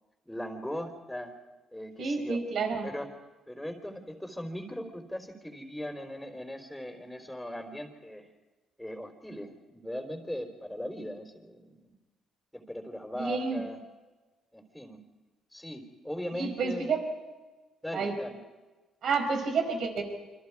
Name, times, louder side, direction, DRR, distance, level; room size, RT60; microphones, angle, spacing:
voice 1, 0.2-1.3 1.7-2.4 2.8-3.1 3.5-8.3 8.8-11.9 12.5-13.8 14.5-15.0 15.5-16.9 17.8-18.4, equal, ahead, 1 dB, 4.0 m, -39 dB
voice 2, 2.0-2.9 13.1-13.7 16.3-17.0 17.9-18.1 19.0-20.0, right 4 dB, 65° right, 5 dB, 4.7 m, -30 dB
29.0 x 25.5 x 4.8 m, 1.2 s
cardioid pair, 90°, 0 cm